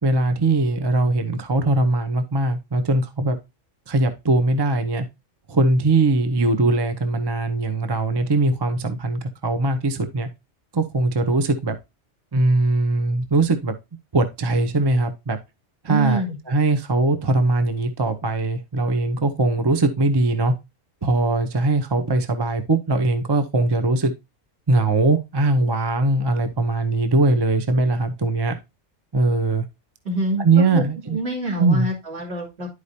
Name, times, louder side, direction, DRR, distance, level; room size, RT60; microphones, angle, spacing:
voice 1, 0.0-3.4 3.9-5.1 5.5-10.3 10.7-11.7 12.3-13.7 14.1-15.4 15.8-16.2 16.5-20.5 21.0-24.1 24.7-28.5 29.1-29.6 30.4-31.2 31.5-31.9, right 2 dB, 25° right, 8 dB, 0.6 m, -20 dB
voice 2, 15.9-16.4 30.0-30.8 31.1-32.7, right 2 dB, 50° right, -3 dB, 3.1 m, -26 dB
11.0 x 4.9 x 2.7 m, 0.23 s
omnidirectional pair, 1.4 m